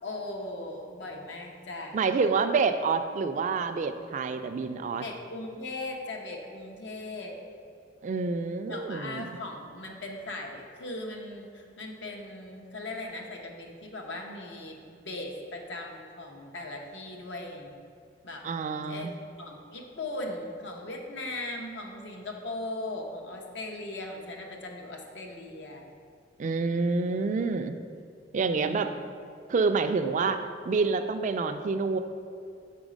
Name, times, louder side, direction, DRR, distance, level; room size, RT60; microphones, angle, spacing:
voice 1, 0.0-2.0 5.0-7.4 8.7-17.7 18.2-18.5 18.9-25.8 28.4-29.0, left 2 dB, 85° left, 1 dB, 0.9 m, -39 dB
voice 2, 1.9-5.0 8.0-9.4 18.4-19.1 26.4-27.7 28.3-28.9 29.5-32.0, right 4 dB, 45° right, 9 dB, 0.3 m, -27 dB
6.1 x 4.0 x 5.1 m, 2.4 s
head